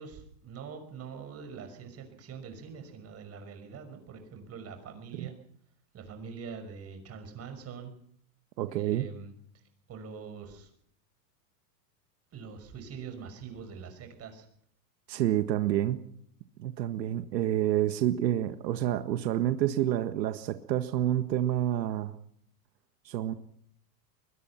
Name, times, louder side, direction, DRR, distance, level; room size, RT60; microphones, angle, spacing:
voice 1, 0.0-5.4 5.9-7.9 8.7-9.6 9.9-10.7 12.3-14.5, right 6 dB, 30° right, 7 dB, 5.9 m, -44 dB
voice 2, 8.6-9.1 15.1-16.0 16.6-22.1 23.1-23.3, right 12 dB, 80° right, 9 dB, 1.8 m, -28 dB
22.5 x 21.5 x 5.9 m, 0.64 s
supercardioid pair, 135°, 49 cm